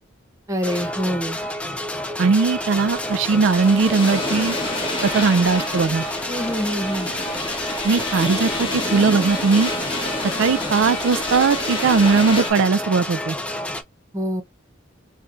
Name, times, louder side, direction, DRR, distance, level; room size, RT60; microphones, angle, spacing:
voice 1, 0.5-1.4 6.3-7.1 14.1-14.4, equal, 15° right, 0.8 m, -25 dB
sound 1, 0.6-13.8, left 1 dB, 5° left, 0.5 m, -30 dB
voice 2, 2.2-4.5 5.0-6.0 7.8-9.7 10.4-13.4, right 4 dB, 90° right, 0.4 m, -19 dB
sound 2, 2.6-12.5, left 2 dB, 30° left, 1.3 m, -29 dB
4.3 x 2.2 x 2.6 m
head